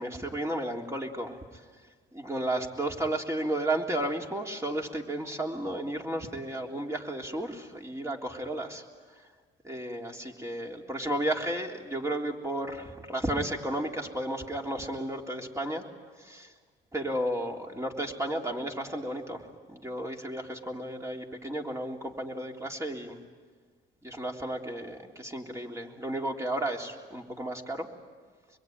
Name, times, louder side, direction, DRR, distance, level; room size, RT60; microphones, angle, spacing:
voice 1, 0.0-1.6 2.1-8.8 9.6-15.9 16.2-16.5 16.9-23.2 24.0-27.9, right 1 dB, 15° right, 1 dB, 3.5 m, -33 dB
25.5 x 22.0 x 9.5 m, 1.5 s
cardioid pair, 90°, 20 cm